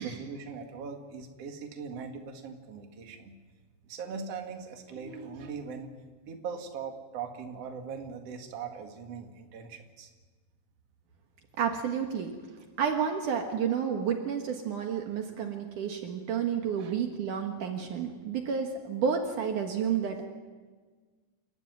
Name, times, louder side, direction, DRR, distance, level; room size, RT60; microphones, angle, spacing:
voice 1, 0.0-3.3 3.8-5.9 6.3-10.1 16.7-16.9, right 5 dB, 50° right, 3 dB, 2.8 m, -40 dB
voice 2, 11.6-12.3 12.8-20.3, right 7 dB, 65° right, 3 dB, 2.9 m, -30 dB
29.0 x 13.5 x 9.3 m, 1.4 s
omnidirectional pair, 4.0 m